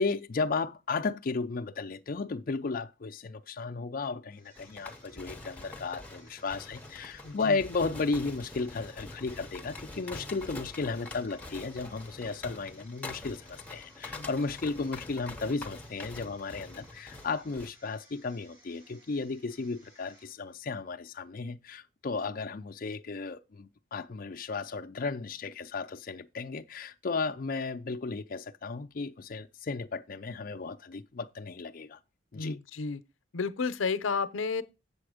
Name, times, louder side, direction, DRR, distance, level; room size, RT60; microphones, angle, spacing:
voice 1, 0.0-32.0 32.3-32.6, left 4 dB, 45° left, 0.4 m, -34 dB
sound 1, 4.3-20.6, right 1 dB, 50° right, 5.5 m, -61 dB
sound 2, 4.6-17.7, left 2 dB, 10° left, 0.8 m, -45 dB
voice 2, 7.2-7.6 14.1-14.3 32.3-33.0 33.3-34.6, left 5 dB, 85° left, 0.6 m, -32 dB
7.7 x 6.9 x 4.9 m
head